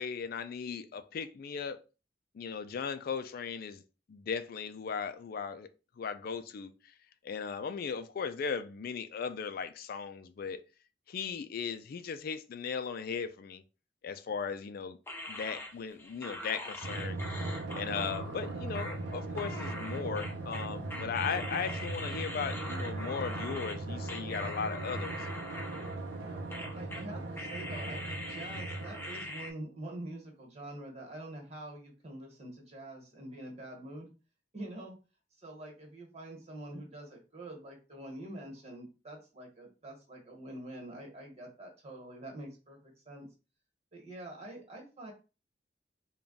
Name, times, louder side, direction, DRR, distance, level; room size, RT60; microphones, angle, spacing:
voice 1, 0.0-1.8 2.3-3.8 4.1-5.7 6.0-6.9 7.2-10.6 11.1-13.6 14.0-15.0 15.3-25.3, left 6 dB, 55° left, 0.3 m, -37 dB
sound 1, 15.1-23.8 24.1-26.2 26.5-27.1 27.4-29.5, left 1 dB, 15° left, 0.7 m, -43 dB
Drum, 16.8-29.9, right 2 dB, 85° right, 0.6 m, -39 dB
voice 2, 26.1-34.1 34.5-35.0 35.4-43.3 43.9-45.1, right 1 dB, 40° right, 1.4 m, -46 dB
3.4 x 2.3 x 3.9 m
head